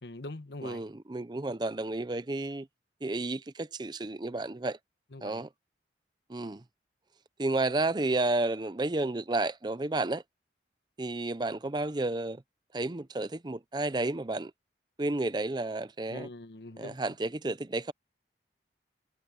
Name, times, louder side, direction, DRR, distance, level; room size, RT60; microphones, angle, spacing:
voice 1, 0.0-0.8 5.1-5.4 16.1-17.0, left 2 dB, 75° left, 1.2 m, -43 dB
voice 2, 0.6-2.7 3.0-4.8 5.2-5.5 6.3-6.6 7.4-10.2 11.0-12.4 12.7-14.5 15.0-16.3 16.8-17.9, right 2 dB, 25° right, 0.5 m, -31 dB
head